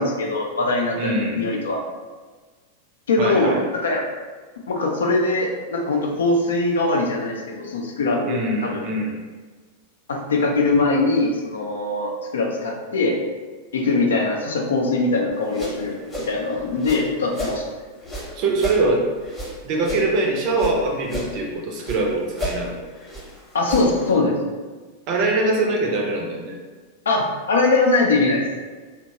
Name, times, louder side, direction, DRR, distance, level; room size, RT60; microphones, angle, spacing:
voice 1, 0.0-1.8 3.1-4.0 4.7-8.8 10.1-13.2 13.7-17.6 23.5-24.4 27.1-28.4, left 3 dB, 65° left, 0 dB, 0.4 m, -22 dB
voice 2, 1.0-1.4 3.2-3.6 8.2-9.1 18.4-19.0 19.6-22.8 25.1-26.6, right 2 dB, 45° right, 0 dB, 0.5 m, -23 dB
sound 1, 15.3-17.6 18.0-20.8 21.0-22.0 22.3-24.1, equal, 10° left, 0.8 m, -32 dB
2.8 x 2.1 x 2.8 m, 1.4 s
figure-of-eight pair, 90°, 0 cm